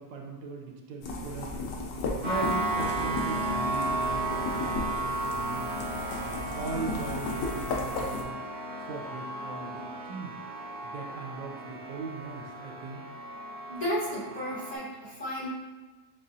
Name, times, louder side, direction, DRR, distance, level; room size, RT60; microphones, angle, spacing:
voice 1, 0.0-1.7 2.1-5.9 6.5-8.4 8.8-10.4 10.8-13.0, right 4 dB, 85° right, 2 dB, 1.3 m, -39 dB
sound 1, 1.0-8.2, left 2 dB, 90° left, 1.3 m, -35 dB
sound 2, 2.2-14.7, right 2 dB, 65° right, 1.6 m, -34 dB
voice 2, 13.7-15.5, equal, 40° left, -10 dB, 1.5 m, -33 dB
7.3 x 2.4 x 2.7 m, 1.3 s
omnidirectional pair, 1.8 m